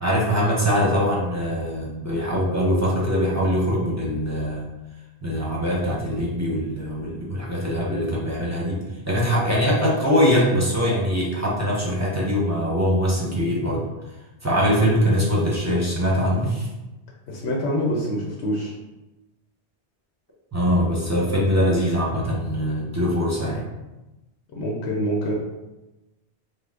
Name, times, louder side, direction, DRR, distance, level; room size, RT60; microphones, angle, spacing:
voice 1, 0.0-4.7 5.2-13.8 14.4-16.7 20.5-23.6, equal, 15° right, -5 dB, 0.8 m, -22 dB
voice 2, 17.3-18.7 24.5-25.3, equal, 75° left, -2 dB, 1.0 m, -25 dB
5.4 x 2.0 x 3.7 m, 1.0 s
omnidirectional pair, 1.1 m